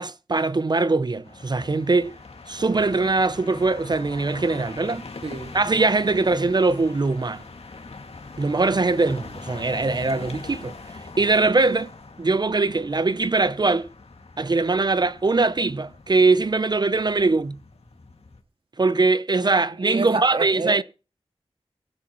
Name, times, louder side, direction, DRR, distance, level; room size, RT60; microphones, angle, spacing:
voice 1, 0.0-2.1 2.5-5.0 5.5-7.4 8.4-10.7 11.2-11.9 12.2-13.9 14.4-17.6 18.8-20.8, right 3 dB, 45° right, 0.6 m, -21 dB
sound 1, 1.2-18.4, left 3 dB, 75° left, 2.1 m, -42 dB
voice 2, 5.2-5.5 19.8-20.8, right 3 dB, 60° right, 2.1 m, -28 dB
22.5 x 8.4 x 3.0 m
wide cardioid pair, 60°, 10 cm